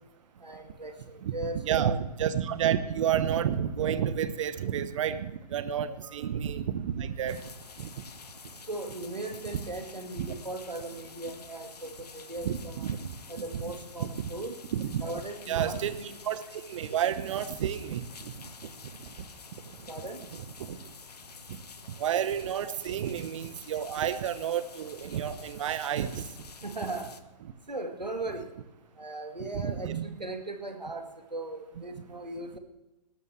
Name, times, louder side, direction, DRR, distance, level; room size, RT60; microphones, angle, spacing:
voice 1, 0.4-2.0 5.9-6.2 8.7-12.9 13.3-14.7 15.0-16.1 19.9-20.2 26.6-27.1 27.7-28.5 29.0-32.6, right 2 dB, 90° right, 5 dB, 2.0 m, -38 dB
voice 2, 1.6-7.4 7.8-7.9 10.2-10.3 12.4-13.0 14.0-14.1 14.7-15.0 15.5-16.4 16.7-18.0 20.7-20.8 22.0-26.2 29.5-30.2, right 9 dB, 50° right, 12 dB, 1.1 m, -30 dB
sound 1, 7.3-27.2, left 5 dB, 70° left, 1.1 m, -49 dB
18.0 x 13.5 x 3.3 m, 1.0 s
figure-of-eight pair, 115°, 21 cm